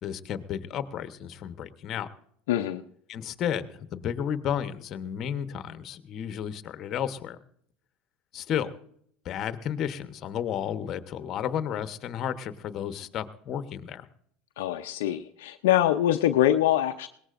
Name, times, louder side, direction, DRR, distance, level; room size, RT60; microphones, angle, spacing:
voice 1, 0.0-2.1 3.1-3.7 3.9-7.4 8.3-8.7 9.2-14.1, left 9 dB, 45° left, 11 dB, 1.0 m, -32 dB
voice 2, 2.5-2.8 14.6-17.1, left 12 dB, 75° left, 6 dB, 0.6 m, -24 dB
21.0 x 18.5 x 2.6 m, 0.66 s
hypercardioid pair, 85°, 0 cm